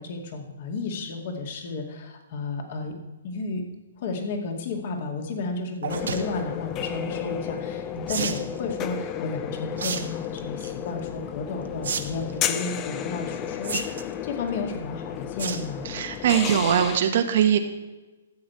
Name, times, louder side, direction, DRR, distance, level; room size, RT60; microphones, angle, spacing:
voice 1, 0.0-2.9 3.2-3.6 4.0-15.9, left 3 dB, 50° left, 2 dB, 2.2 m, -32 dB
sound 1, 5.8-6.2 8.1-8.4 9.8-10.0 10.4-10.7 11.8-12.0 12.3-12.4 13.6-14.1 15.4-15.7 16.1-16.3 16.7-16.8 16.9-17.0, right 6 dB, 75° right, 1.1 m, -30 dB
sound 2, 5.9-17.0, left 9 dB, 25° left, 0.6 m, -33 dB
voice 2, 15.9-17.6, right 9 dB, 55° right, 7 dB, 1.4 m, -21 dB
13.0 x 8.0 x 4.5 m, 1.1 s
hypercardioid pair, 130°, 0 cm